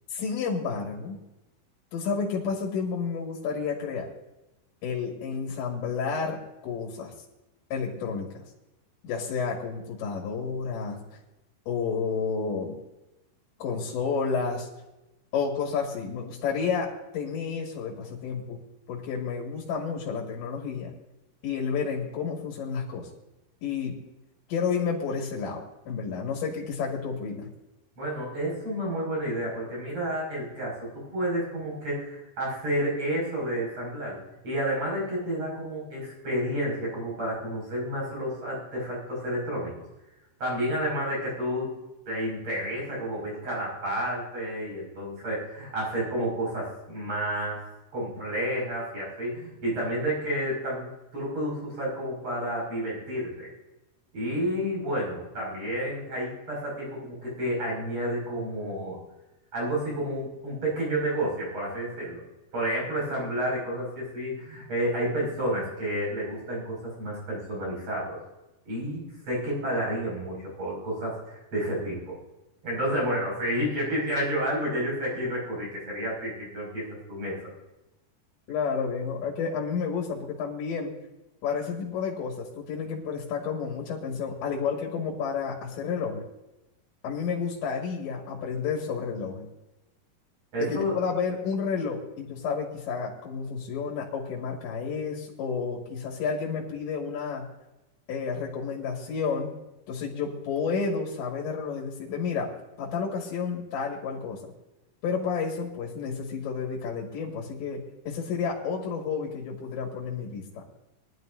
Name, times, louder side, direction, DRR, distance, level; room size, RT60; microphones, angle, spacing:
voice 1, 0.1-1.2 1.9-4.1 4.8-7.1 7.7-8.4 9.0-11.0 11.7-12.8 13.6-14.7 15.3-18.6 18.9-20.9 21.4-23.1 23.6-24.0 24.5-27.5 78.5-80.9 81.4-86.2 87.0-89.5 90.6-97.5 98.1-99.5 99.9-102.5 102.8-104.4 105.0-110.6, left 5 dB, 90° left, -2 dB, 4.2 m, -31 dB
voice 2, 28.0-39.7 40.4-41.7 42.1-47.6 47.9-53.5 54.1-59.0 59.5-62.2 62.5-68.2 68.6-72.2 72.6-77.4 90.5-90.9, equal, 35° right, -4 dB, 6.8 m, -30 dB
22.0 x 12.5 x 2.7 m, 0.98 s
omnidirectional pair, 5.0 m